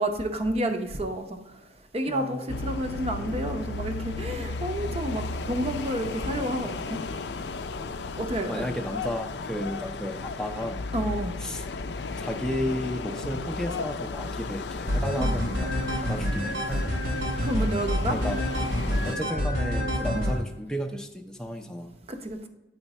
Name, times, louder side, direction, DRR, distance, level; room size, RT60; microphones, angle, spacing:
voice 1, 0.0-1.4 1.9-7.0 8.2-8.6 10.9-11.4 15.2-15.3 17.4-18.2 20.1-20.3 22.1-22.4, right 1 dB, 35° right, 6 dB, 0.7 m, -30 dB
voice 2, 2.1-2.9 8.5-10.8 11.4-11.7 12.2-16.9 18.1-18.4 19.0-21.9, equal, 5° left, 3 dB, 0.5 m, -33 dB
sound 1, 2.5-19.1, left 3 dB, 65° left, 0.4 m, -35 dB
sound 2, 14.9-20.4, equal, 75° right, 2.1 m, -27 dB
8.9 x 4.5 x 4.1 m, 0.99 s
head